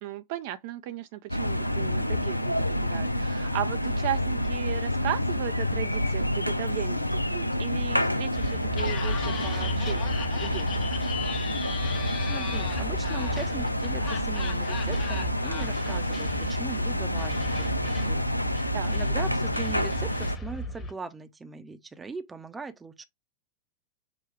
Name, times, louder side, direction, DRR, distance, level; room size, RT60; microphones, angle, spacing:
voice 1, 0.0-10.9 18.7-18.9, right 13 dB, 50° right, 0.4 m, -36 dB
sound 1, 1.3-20.4, left 1 dB, 85° left, 0.4 m, -28 dB
sound 2, 8.3-20.9, right 1 dB, 20° left, 1.3 m, -37 dB
Laughter, 8.7-15.6, left 8 dB, 40° left, 1.0 m, -38 dB
voice 2, 12.2-18.3 18.9-23.1, right 4 dB, 15° right, 0.7 m, -40 dB
5.9 x 2.3 x 3.2 m
figure-of-eight pair, 90°, 0 cm